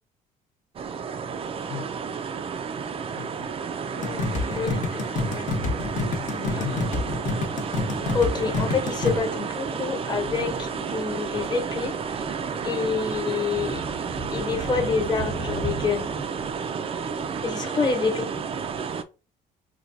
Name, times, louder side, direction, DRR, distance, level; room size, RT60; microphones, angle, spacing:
sound 1, 0.8-19.0, right 6 dB, 35° right, 0.4 m, -31 dB
Thunder, 2.6-16.2, right 1 dB, 10° left, 0.6 m, -39 dB
voice 1, 3.2-3.5 3.9-4.9 6.1-7.4, left 9 dB, 80° left, 0.7 m, -38 dB
sound 2, 4.0-9.2, left 3 dB, 50° left, 0.9 m, -28 dB
voice 2, 4.5-5.5 8.1-11.9 12.6-13.8 14.3-16.1 17.4-18.3, left 5 dB, 25° left, 1.1 m, -27 dB
4.5 x 2.3 x 2.6 m
cardioid pair, 110°, 17 cm